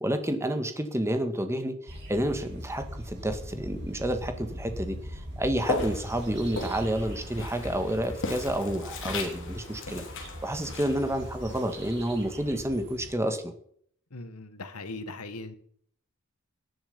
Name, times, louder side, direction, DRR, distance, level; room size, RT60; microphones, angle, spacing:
voice 1, 0.0-13.5, right 1 dB, 10° right, 7 dB, 1.6 m, -30 dB
sound 1, 1.9-13.1, equal, 55° right, 6.0 m, -41 dB
Walk footsteps, 5.6-12.7, left 3 dB, 60° left, 3.3 m, -38 dB
voice 2, 14.1-15.6, left 2 dB, 85° left, 11 dB, 1.6 m, -39 dB
18.0 x 10.5 x 5.4 m, 0.63 s
head